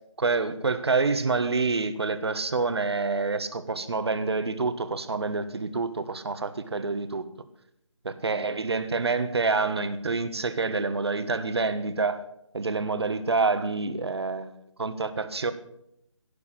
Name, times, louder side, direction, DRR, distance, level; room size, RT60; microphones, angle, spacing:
voice 1, 0.2-7.2 8.0-12.2 12.5-15.5, right 4 dB, 55° right, 11 dB, 1.4 m, -27 dB
16.5 x 6.9 x 8.5 m, 0.77 s
figure-of-eight pair, 155°, 16 cm